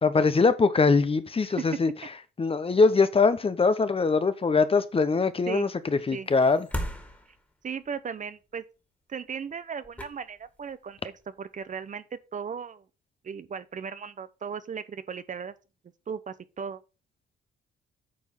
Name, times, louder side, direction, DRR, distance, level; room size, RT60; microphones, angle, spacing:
voice 1, 0.0-1.9 2.4-6.7, left 4 dB, 30° left, 0.9 m, -22 dB
voice 2, 1.4-1.8 5.5-5.7 6.1-6.3 7.6-8.6 9.1-12.8 13.2-15.5 16.1-16.8, right 6 dB, 40° right, 0.7 m, -36 dB
sound 1, 6.3-7.9 9.5-9.6 9.8-10.8 11.2-11.4, equal, 10° left, 2.2 m, -36 dB
8.5 x 4.6 x 5.4 m
cardioid pair, 90°, 20 cm